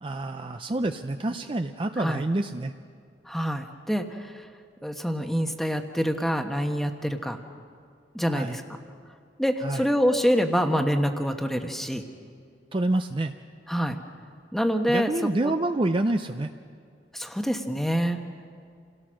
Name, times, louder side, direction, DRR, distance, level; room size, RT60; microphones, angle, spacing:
voice 1, 0.0-2.7 8.3-8.6 9.6-9.9 12.7-13.3 14.9-16.5, right 2 dB, 30° right, 7 dB, 0.5 m, -27 dB
voice 2, 3.3-4.3 4.8-7.4 8.1-8.6 9.4-12.0 13.7-14.0 14.5-15.1 15.4-15.5 17.1-18.2, equal, ahead, 5 dB, 1.1 m, -26 dB
28.0 x 17.5 x 6.3 m, 2.2 s
head